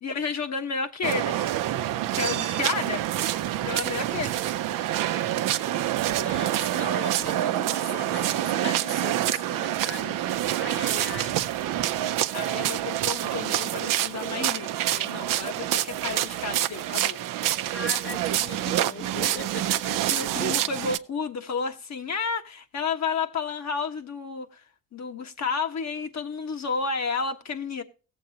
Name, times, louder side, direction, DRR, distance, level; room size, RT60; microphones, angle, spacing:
voice 1, 0.0-1.5 2.1-3.0 3.6-4.4 8.6-8.8 12.3-17.2 20.0-24.6 24.9-27.8, left 5 dB, 55° left, 1.4 m, -31 dB
sound 1, 1.0-21.0, right 13 dB, 80° right, 0.6 m, -27 dB
voice 2, 6.1-10.3 10.6-11.4 17.7-20.1, left 5 dB, 40° left, 0.8 m, -39 dB
17.0 x 7.8 x 2.8 m
supercardioid pair, 55°, 32 cm